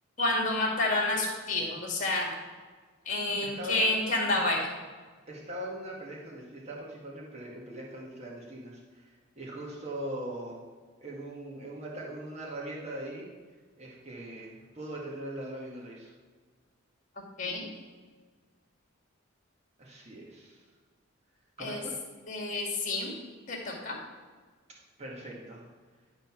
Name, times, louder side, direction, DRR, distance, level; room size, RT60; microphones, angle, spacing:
voice 1, 0.2-2.3 3.1-4.7 17.4-17.7 21.6-21.8 22.3-23.1 23.5-24.0, left 2 dB, 40° left, 0 dB, 2.0 m, -29 dB
voice 2, 3.4-3.9 5.3-10.7 11.0-13.3 13.8-16.1 19.8-20.6 21.6-21.9 25.0-25.7, right 1 dB, 35° right, -3 dB, 1.8 m, -41 dB
11.5 x 4.0 x 5.9 m, 1.4 s
head